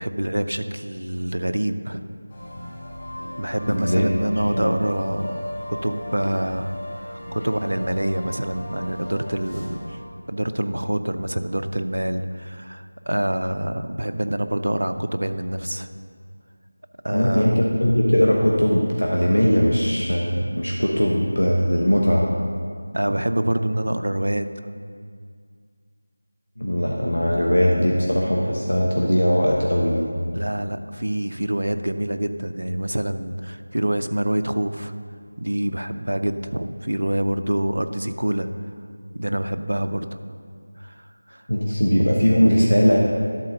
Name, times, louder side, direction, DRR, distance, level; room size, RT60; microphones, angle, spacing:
voice 1, 0.0-2.1 3.4-6.8 7.1-10.0 10.3-15.9 17.0-17.7 22.9-24.5 30.3-34.9 35.4-38.5 39.1-40.2 40.8-41.4, right 1 dB, 70° right, 9 dB, 0.5 m, -26 dB
sound 1, 2.3-10.0, left 1 dB, 25° left, 2.6 m, -35 dB
voice 2, 3.7-4.0 4.5-4.7 17.1-22.3 26.6-30.1 41.5-43.0, equal, 85° left, -2 dB, 1.1 m, -20 dB
11.5 x 4.2 x 6.4 m, 2.1 s
figure-of-eight pair, 170°, 0 cm